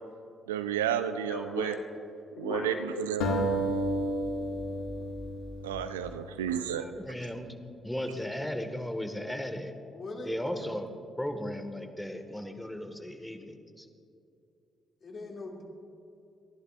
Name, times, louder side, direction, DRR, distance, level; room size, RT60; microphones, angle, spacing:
voice 1, 0.5-1.8 2.4-3.3 5.6-6.8, right 9 dB, 85° right, 11 dB, 0.5 m, -31 dB
voice 2, 1.3-1.8 2.3-2.8 8.0-8.1 9.9-10.7 15.0-15.6, left 2 dB, 50° left, 0 dB, 2.5 m, -38 dB
sound 1, 3.2-6.4, equal, 75° left, 1.5 m, -31 dB
voice 3, 6.5-7.5 7.8-9.7 10.2-10.9 11.2-13.9, left 1 dB, 5° left, 6 dB, 1.6 m, -36 dB
30.0 x 11.0 x 2.5 m, 2.7 s
hypercardioid pair, 40°, 0 cm